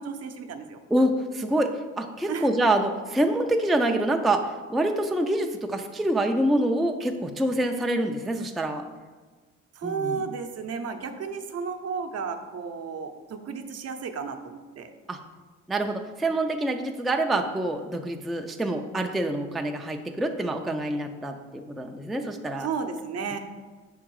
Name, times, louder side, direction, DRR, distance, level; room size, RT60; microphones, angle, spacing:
voice 1, 0.0-0.8 2.3-2.5 9.7-14.9 22.6-23.4, right 5 dB, 55° right, 6 dB, 0.7 m, -33 dB
voice 2, 0.9-8.8 9.8-10.2 15.1-15.2 15.7-22.7, right 1 dB, ahead, 4 dB, 0.4 m, -26 dB
6.0 x 3.7 x 4.6 m, 1.4 s
cardioid pair, 90°, 30 cm